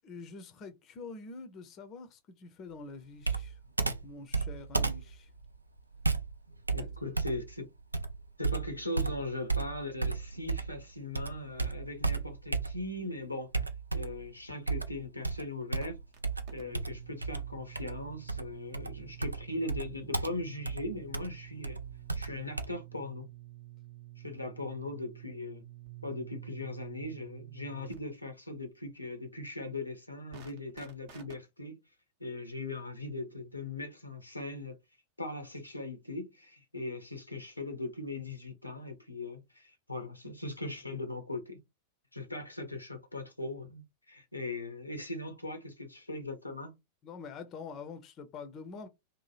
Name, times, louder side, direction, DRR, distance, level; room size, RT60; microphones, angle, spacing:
voice 1, 0.0-3.6 4.0-5.3 6.8-6.9 47.0-48.9, left 4 dB, 35° left, 0.5 m, -46 dB
Computer keyboard, 3.2-10.8 11.1-13.0 13.5-14.3 14.7-22.7, right 4 dB, 80° right, 0.3 m, -34 dB
voice 2, 6.7-7.7 8.4-13.5 13.9-16.0 16.5-21.8 22.1-23.3 24.2-25.6 26.0-31.8 32.2-34.8 35.2-41.6 42.1-46.7, left 2 dB, 85° left, 0.7 m, -39 dB
sound 1, 15.8-16.2 16.5-28.0 30.3-31.4, right 16 dB, 50° right, 0.7 m, -50 dB
2.7 x 2.1 x 3.2 m
figure-of-eight pair, 90°, 0 cm